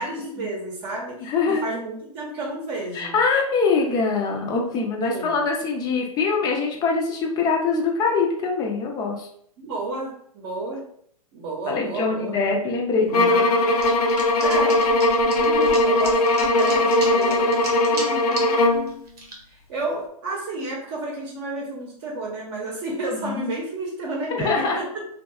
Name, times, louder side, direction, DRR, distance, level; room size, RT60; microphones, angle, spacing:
voice 1, 0.0-3.2 5.0-5.4 9.6-10.8 11.3-12.4 13.3-13.7 14.4-14.8 15.8-19.0 19.7-24.8, right 2 dB, 40° right, -2 dB, 0.7 m, -32 dB
voice 2, 1.2-1.6 2.9-9.3 11.7-13.4 15.2-15.8 18.0-18.1 23.1-23.5 24.3-24.8, left 4 dB, 20° left, 1 dB, 0.4 m, -24 dB
sound 1, 13.1-18.9, left 1 dB, 80° left, 0.4 m, -19 dB
sound 2, 13.8-18.5 18.9-19.3, right 2 dB, 90° right, 0.8 m, -35 dB
2.6 x 2.3 x 2.3 m, 0.66 s
hypercardioid pair, 125°, 19 cm